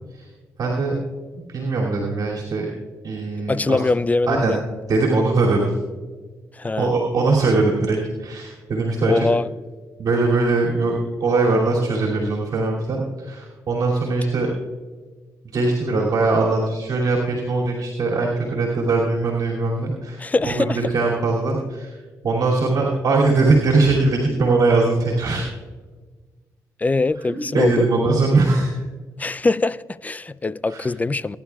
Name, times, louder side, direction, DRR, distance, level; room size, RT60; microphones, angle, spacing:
voice 1, 0.6-0.9 1.5-2.7 3.0-3.8 4.3-4.6 4.9-5.7 6.8-9.3 10.0-14.5 15.5-21.9 22.2-25.5 27.3-28.7 30.7-30.9, right 3 dB, 65° right, -3 dB, 2.6 m, -21 dB
voice 2, 3.5-4.6 6.5-6.9 9.1-9.5 20.2-20.8 26.8-27.7 29.2-31.4, left 3 dB, 25° left, 17 dB, 0.4 m, -22 dB
22.5 x 10.5 x 2.3 m, 1.4 s
cardioid pair, 70°, 7 cm